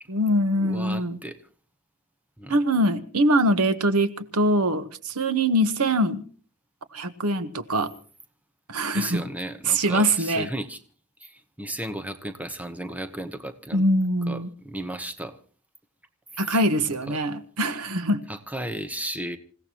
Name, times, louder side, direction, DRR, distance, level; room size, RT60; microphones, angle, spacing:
voice 1, 0.1-1.2 2.5-6.2 6.9-7.9 8.7-9.2 9.6-10.5 13.7-14.5 16.4-18.2, right 1 dB, 90° right, 12 dB, 1.2 m, -23 dB
voice 2, 0.6-1.4 2.4-2.6 8.9-10.8 11.2-13.8 14.3-14.4 14.6-15.4 16.5-16.6 17.1-17.2 18.3-19.4, right 1 dB, 5° right, 8 dB, 1.0 m, -34 dB
27.5 x 16.5 x 3.0 m, 0.40 s
head